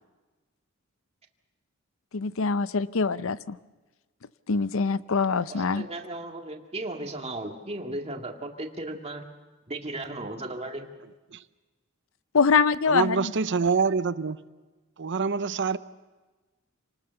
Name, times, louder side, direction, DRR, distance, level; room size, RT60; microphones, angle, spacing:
voice 1, 2.1-3.6 4.5-5.9 12.3-13.3, left 5 dB, 65° left, 0.7 m, -24 dB
voice 2, 5.5-9.2 9.7-10.9, right 2 dB, 30° right, 2.1 m, -36 dB
voice 3, 12.9-14.4 15.0-15.8, right 5 dB, 60° right, 0.7 m, -25 dB
28.0 x 19.5 x 7.1 m
head